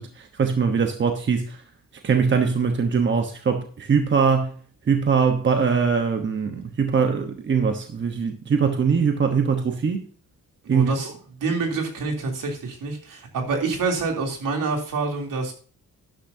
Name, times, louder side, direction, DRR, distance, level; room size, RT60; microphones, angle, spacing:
voice 1, 0.0-1.6 2.0-4.5 4.9-10.1 10.7-10.9, right 6 dB, 35° right, 1.1 m, -22 dB
voice 2, 10.6-11.1 11.4-15.5, right 4 dB, 70° right, 3.2 m, -27 dB
12.5 x 10.5 x 2.8 m
wide cardioid pair, 155°, 34 cm